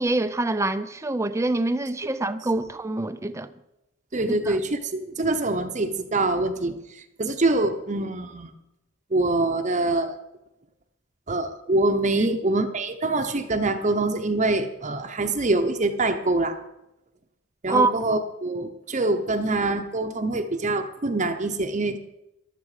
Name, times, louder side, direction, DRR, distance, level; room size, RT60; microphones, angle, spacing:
voice 1, 0.0-3.5 4.5-4.6 12.2-12.4 17.7-17.9, right 2 dB, 15° right, 0.5 m, -25 dB
voice 2, 4.1-8.5 9.1-10.2 11.3-16.6 17.6-22.0, right 2 dB, 35° right, 0.8 m, -25 dB
14.5 x 12.0 x 5.0 m
head